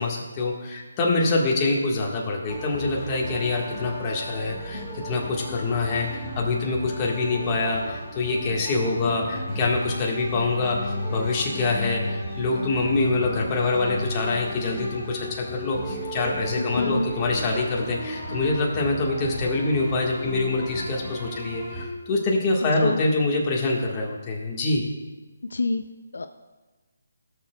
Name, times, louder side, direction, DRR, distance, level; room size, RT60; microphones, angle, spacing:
voice 1, 0.0-24.9, left 3 dB, 20° left, -2 dB, 1.5 m, -25 dB
sound 1, 2.5-21.9, left 1 dB, 5° right, 2.4 m, -34 dB
voice 2, 16.6-17.1 22.8-23.0 25.5-25.8 26.1-26.3, left 3 dB, 75° left, 8 dB, 0.5 m, -26 dB
17.5 x 6.7 x 2.3 m, 1.2 s
hypercardioid pair, 160°, 0 cm